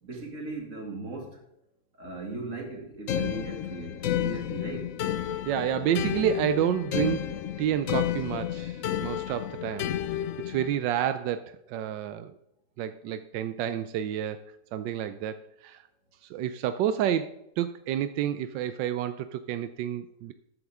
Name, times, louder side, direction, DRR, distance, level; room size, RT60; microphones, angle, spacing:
voice 1, 0.0-1.4 2.0-5.0, right 3 dB, 45° right, 1 dB, 2.8 m, -38 dB
sound 1, 3.1-10.8, left 10 dB, 65° left, 0.8 m, -31 dB
voice 2, 5.4-7.2 7.6-12.3 12.8-14.4 14.7-15.8 16.3-20.3, right 10 dB, 85° right, 11 dB, 1.3 m, -29 dB
13.0 x 8.9 x 3.6 m, 0.82 s
omnidirectional pair, 1.9 m